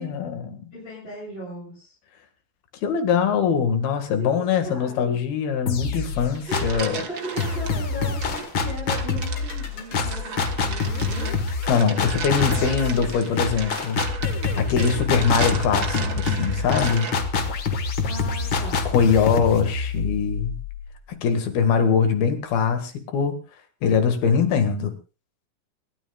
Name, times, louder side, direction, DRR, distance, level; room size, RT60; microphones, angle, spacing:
voice 1, 0.0-0.6 2.8-7.0 11.7-14.0 14.6-17.1 18.9-20.6 21.1-23.4 23.8-24.9, left 6 dB, 90° left, 7 dB, 3.7 m, -22 dB
voice 2, 0.7-1.9 4.2-5.2 6.5-11.3 12.4-13.3 18.0-18.9, equal, 15° left, -5 dB, 8.0 m, -37 dB
sound 1, 5.7-6.9 7.4-21.1, left 4 dB, 50° left, 1.6 m, -26 dB
sound 2, 6.2-7.7 8.2-17.4, right 5 dB, 50° right, 1.1 m, -35 dB
27.0 x 13.0 x 2.3 m, 0.32 s
omnidirectional pair, 4.2 m